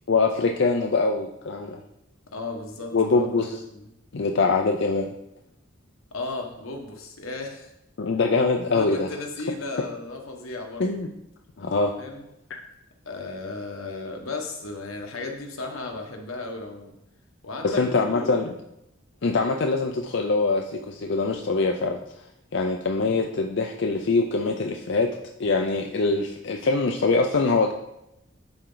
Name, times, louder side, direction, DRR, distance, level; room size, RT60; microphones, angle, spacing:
voice 1, 0.1-1.8 2.9-3.5 4.1-5.1 8.0-9.1 10.8-11.1 11.6-11.9 17.6-18.5 19.2-22.0 22.5-25.1 25.4-27.7, left 3 dB, 55° left, 3 dB, 0.5 m, -23 dB
voice 2, 2.3-3.9 6.1-7.7 8.7-10.9 12.0-12.2 13.0-16.9 17.4-18.5, left 3 dB, 80° left, 2 dB, 1.3 m, -35 dB
11.0 x 4.5 x 3.9 m, 0.86 s
head